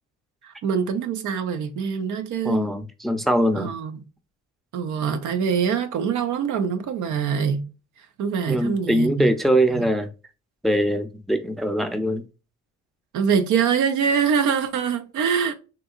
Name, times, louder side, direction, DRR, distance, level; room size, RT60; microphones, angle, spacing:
voice 1, 0.4-2.6 3.6-4.0 4.7-7.7 8.2-9.3 9.7-9.9 13.1-15.5, right 6 dB, 75° right, 0.7 m, -24 dB
voice 2, 2.4-3.7 8.5-10.1 10.6-12.2, equal, ahead, 0.5 m, -22 dB
3.9 x 2.7 x 2.4 m
cardioid pair, 90°, 30 cm